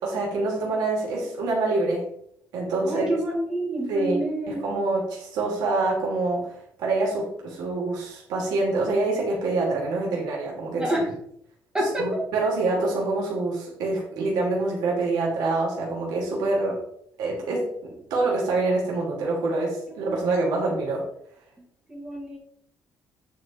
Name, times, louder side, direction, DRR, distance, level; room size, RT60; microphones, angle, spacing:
voice 1, 0.0-2.1 2.5-3.1 3.9-4.2 4.5-11.0 12.0-16.8 17.2-21.0, right 2 dB, 80° right, -3 dB, 2.9 m, -26 dB
voice 2, 2.8-4.6 10.8-11.1 11.7-12.2 19.9-20.0 20.5-20.7 21.9-22.4, right 1 dB, 10° right, -3 dB, 2.6 m, -28 dB
9.0 x 4.9 x 4.6 m, 0.70 s
cardioid pair, 180°, 7 cm